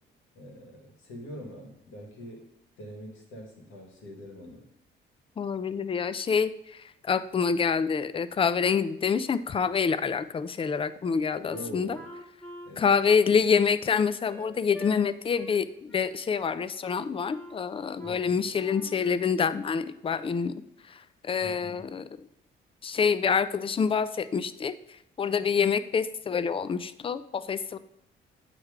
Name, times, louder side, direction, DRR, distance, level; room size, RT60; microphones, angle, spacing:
voice 1, 0.3-2.5 2.8-4.6 11.5-12.1 12.6-13.0 18.0-18.5 21.4-21.9, equal, 85° left, 1 dB, 1.8 m, -44 dB
voice 2, 5.4-12.0 12.8-20.5 20.9-22.0 22.8-24.7 25.2-27.8, left 6 dB, 25° left, 14 dB, 0.4 m, -27 dB
Wind instrument woodwind instrument, 11.5-15.0 15.4-15.6 15.9-16.6 16.8-17.6 18.0-18.2 18.5-19.2, left 1 dB, 5° left, 1.5 m, -47 dB
8.4 x 3.3 x 5.0 m, 0.78 s
cardioid pair, 90°, 20 cm